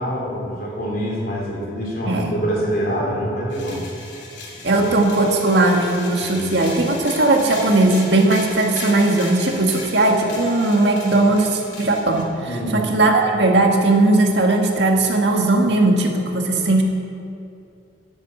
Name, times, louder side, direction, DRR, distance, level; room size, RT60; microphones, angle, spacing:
voice 1, 0.0-3.8 6.2-6.4 12.5-12.9, equal, 55° left, -4 dB, 3.7 m, -25 dB
sound 1, 3.5-12.2, left 2 dB, 75° left, 2.5 m, -36 dB
voice 2, 4.6-12.3 12.7-16.8, right 2 dB, 75° right, 2 dB, 1.7 m, -18 dB
10.0 x 9.7 x 7.5 m, 2.5 s
head